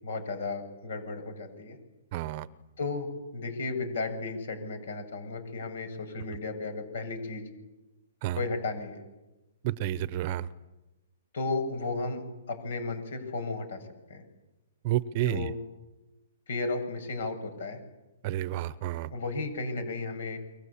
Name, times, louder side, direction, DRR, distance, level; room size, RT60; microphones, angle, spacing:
voice 1, 0.0-1.8 2.8-7.4 8.3-9.0 11.3-13.8 14.1-14.2 15.1-15.5 16.5-17.8 19.1-20.4, left 3 dB, 70° left, 10 dB, 7.3 m, -34 dB
voice 2, 2.1-2.5 8.2-8.4 9.6-10.5 14.8-15.5 18.2-19.1, right 13 dB, 35° right, 17 dB, 0.9 m, -30 dB
29.0 x 23.5 x 8.7 m, 1.1 s
hypercardioid pair, 155°, 0 cm